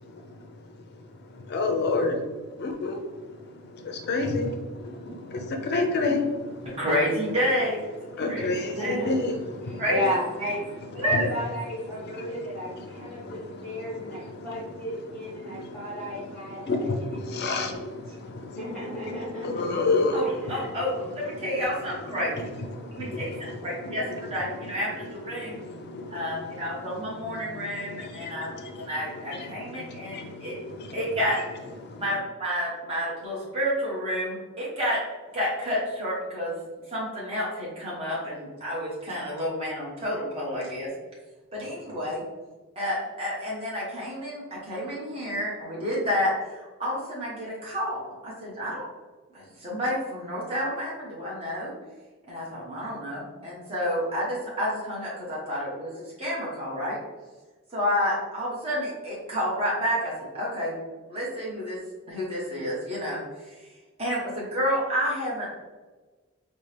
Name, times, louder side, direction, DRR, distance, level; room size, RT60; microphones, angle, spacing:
voice 1, 1.5-2.2 2.6-3.0 3.7-6.8 8.2-9.8 11.1-11.3 12.1-12.3 13.1-13.9 14.5-14.6 15.4-15.9 16.5-18.6 19.4-20.5 22.7-23.6 25.4-26.2 27.2-27.4 28.0-28.9 29.3-31.0 31.8-32.0, left 3 dB, 45° left, 5 dB, 0.4 m, -30 dB
voice 2, 6.8-7.8 8.2-8.5 8.8-9.0 9.8-10.0 10.4-10.5 11.0-11.3 20.1-22.4 22.9-25.5 26.1-28.5 28.7-30.1 30.4-30.6 30.9-31.4 32.0-35.0 35.3-36.5 36.9-40.9 41.5-42.2 42.8-48.8 49.3-51.7 52.3-57.0 57.7-60.8 61.1-61.8 62.1-63.2 63.5-63.6 64.0-65.6, equal, 25° right, -6 dB, 1.0 m, -29 dB
voice 3, 8.2-9.2 9.6-10.6 11.0-18.1 18.5-19.8 20.4-20.5, left 1 dB, 5° left, -11 dB, 1.2 m, -34 dB
4.2 x 2.1 x 3.3 m, 1.3 s
head